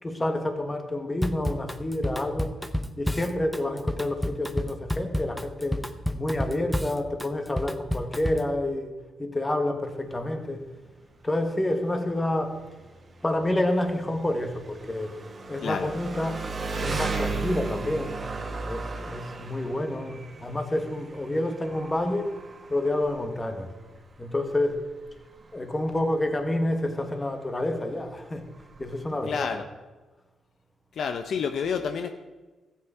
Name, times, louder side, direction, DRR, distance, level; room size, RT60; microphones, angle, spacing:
voice 1, 0.0-2.5 3.0-5.8 6.1-8.9 9.2-10.6 11.2-12.6 13.2-15.1 15.5-16.5 16.8-18.2 18.6-22.3 22.7-23.7 24.2-24.8 25.5-28.4 28.8-29.5, left 1 dB, 25° left, 6 dB, 1.7 m, -28 dB
Drum kit / Drum, 1.2-8.5, equal, 5° left, 0.7 m, -30 dB
Engine, 9.8-29.4, right 4 dB, 40° right, 1.6 m, -37 dB
voice 2, 15.6-15.9 29.3-29.6 31.0-32.1, left 6 dB, 70° left, 7 dB, 0.7 m, -29 dB
13.5 x 8.5 x 4.9 m, 1.2 s
supercardioid pair, 60°, 0 cm